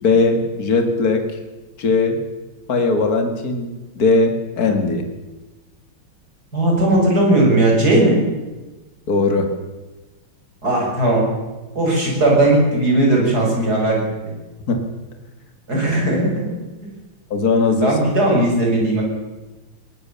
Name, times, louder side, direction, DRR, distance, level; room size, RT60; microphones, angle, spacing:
voice 1, 0.0-1.3 1.8-2.2 2.7-3.7 3.9-5.1 9.1-9.5 14.7-14.8 17.3-17.9, left 3 dB, 45° left, 5 dB, 2.7 m, -18 dB
voice 2, 6.5-8.2 10.6-11.2 11.8-14.3 15.7-16.5 17.8-19.0, right 1 dB, 45° right, -2 dB, 7.6 m, -17 dB
21.5 x 18.5 x 7.0 m, 1.1 s
omnidirectional pair, 2.3 m